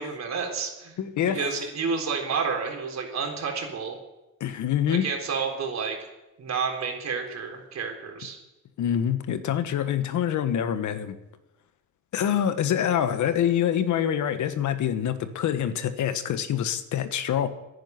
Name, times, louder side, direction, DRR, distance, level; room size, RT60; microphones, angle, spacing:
voice 1, 0.0-0.9 1.3-4.0 4.9-6.0 6.4-8.4, right 5 dB, 60° right, 2 dB, 4.0 m, -30 dB
voice 2, 1.0-1.5 4.4-5.1 8.8-11.2 12.1-17.5, left 9 dB, 75° left, 10 dB, 1.4 m, -25 dB
10.5 x 10.5 x 9.4 m, 0.99 s
cardioid pair, 90°, 30 cm